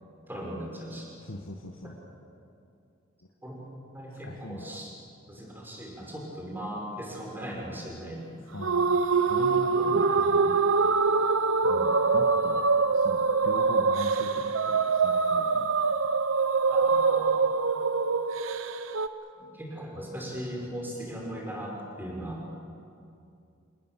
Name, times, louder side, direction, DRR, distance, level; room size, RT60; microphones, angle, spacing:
voice 1, 0.3-1.1 3.4-3.6 3.9-4.9 5.3-8.2 9.4-9.5 9.8-10.5 11.6-11.9 16.7-17.6 19.4-22.4, equal, 10° right, -1 dB, 5.1 m, -38 dB
voice 2, 1.2-2.0 4.1-4.8 8.5-10.7 11.6-11.8 12.1-12.6 12.9-16.1 19.2-19.3 22.2-22.3, left 1 dB, 80° left, 2 dB, 1.6 m, -41 dB
sound 1, 8.6-19.1, right 4 dB, 75° right, 1.0 m, -24 dB
27.5 x 19.5 x 7.5 m, 2.5 s
head